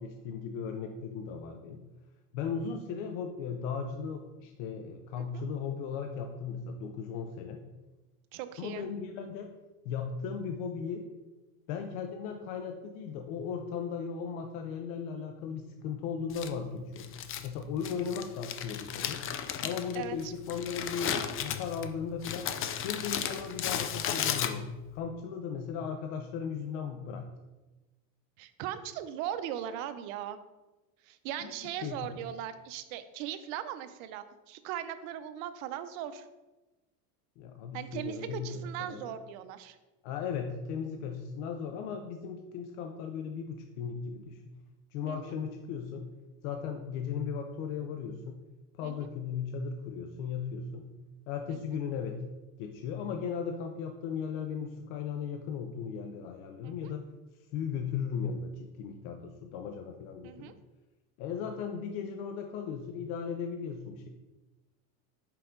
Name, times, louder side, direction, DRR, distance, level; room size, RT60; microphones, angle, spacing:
voice 1, 0.0-1.8 2.3-7.6 8.6-9.5 9.8-11.0 11.7-17.2 17.4-19.2 19.6-22.5 22.8-27.3 31.4-32.2 37.4-39.1 40.0-44.5 44.9-46.1 46.4-48.4 48.7-50.9 51.3-52.2 52.6-57.0 57.5-60.5 61.2-64.1, left 6 dB, 70° left, 5 dB, 0.7 m, -37 dB
voice 2, 8.3-8.9 19.9-20.3 28.4-30.4 31.1-36.3 37.7-39.8 45.1-45.4 48.8-49.1 56.6-56.7 60.2-60.5, right 10 dB, 70° right, 11 dB, 0.7 m, -39 dB
Crumpling crinkling, 16.3-24.9, left 9 dB, 30° left, 0.5 m, -35 dB
5.8 x 4.8 x 3.7 m, 1.1 s
supercardioid pair, 120°, 42 cm